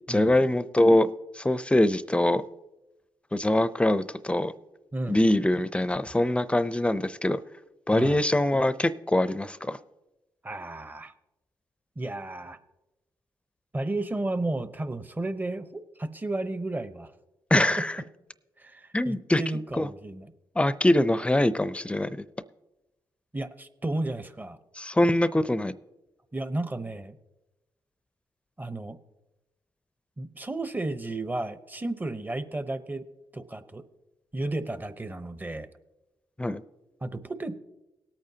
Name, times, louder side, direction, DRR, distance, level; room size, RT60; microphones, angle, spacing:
voice 1, 0.1-1.1 1.3-2.4 3.3-4.5 5.1-7.4 7.9-9.8 17.5-17.9 18.9-19.4 19.8-19.9 20.6-22.2 24.8-25.7 36.4-36.6, left 1 dB, 15° left, 15 dB, 0.6 m, -23 dB
voice 2, 10.4-11.1 12.0-12.6 13.7-17.1 17.5-17.6 18.6-20.3 23.3-24.6 26.3-27.2 28.6-29.0 30.2-33.1 33.3-33.8 34.3-35.7 37.0-37.6, right 2 dB, 20° right, 11 dB, 0.9 m, -33 dB
19.0 x 8.7 x 2.8 m, 1.0 s
supercardioid pair, 60°, 9 cm